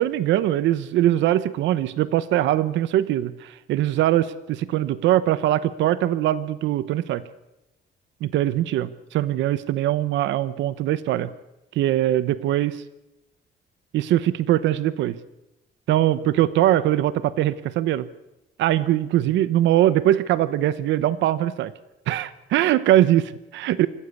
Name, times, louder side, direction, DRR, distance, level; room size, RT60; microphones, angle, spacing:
voice 1, 0.0-7.2 8.2-11.3 11.7-12.8 13.9-15.2 15.9-18.1 18.6-21.7 22.1-23.9, right 13 dB, 85° right, 16 dB, 0.9 m, -21 dB
25.5 x 15.0 x 8.4 m, 0.97 s
cardioid pair, 145°, 19 cm